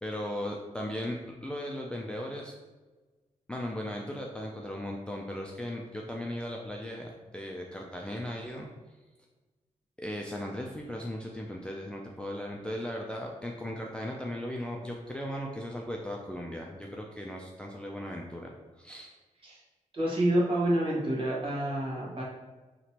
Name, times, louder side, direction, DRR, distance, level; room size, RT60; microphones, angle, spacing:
voice 1, 0.0-2.5 3.5-8.7 10.0-19.1, left 1 dB, 5° left, -1 dB, 0.3 m, -37 dB
voice 2, 19.9-22.2, right 1 dB, 40° right, -5 dB, 1.3 m, -28 dB
6.0 x 2.9 x 2.9 m, 1.2 s
wide cardioid pair, 165°, 14 cm